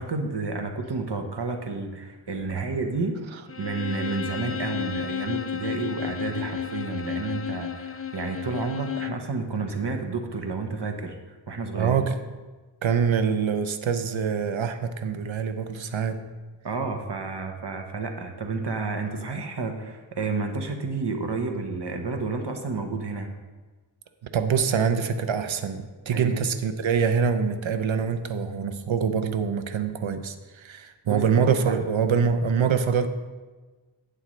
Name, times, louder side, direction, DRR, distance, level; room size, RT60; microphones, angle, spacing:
voice 1, 0.0-3.2 3.6-12.1 16.6-23.3 26.1-26.4 31.1-31.8, right 4 dB, 60° right, 5 dB, 1.2 m, -31 dB
Bowed string instrument, 3.5-9.3, left 8 dB, 30° left, 0.4 m, -32 dB
voice 2, 11.7-12.2 12.8-16.2 24.2-33.1, right 6 dB, 75° right, 8 dB, 0.7 m, -25 dB
11.5 x 8.5 x 3.2 m, 1.3 s
wide cardioid pair, 75°, 48 cm